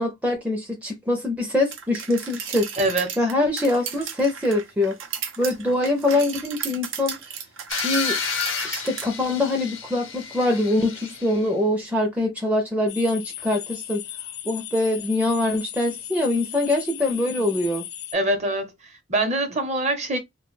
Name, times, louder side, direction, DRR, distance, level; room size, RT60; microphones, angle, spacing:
voice 1, 0.0-2.7 3.2-5.0 5.4-7.1 7.8-8.2 8.6-14.0 14.5-17.9, left 2 dB, 10° right, 0.4 m, -23 dB
sound 1, 1.7-9.1, right 7 dB, 85° right, 0.6 m, -35 dB
voice 2, 2.8-3.1 18.1-20.2, right 2 dB, 35° right, 0.7 m, -24 dB
sound 2, 7.7-11.5, left 5 dB, 85° left, 0.7 m, -30 dB
sound 3, 12.9-18.1, left 11 dB, 60° left, 0.4 m, -37 dB
2.5 x 2.2 x 3.1 m
head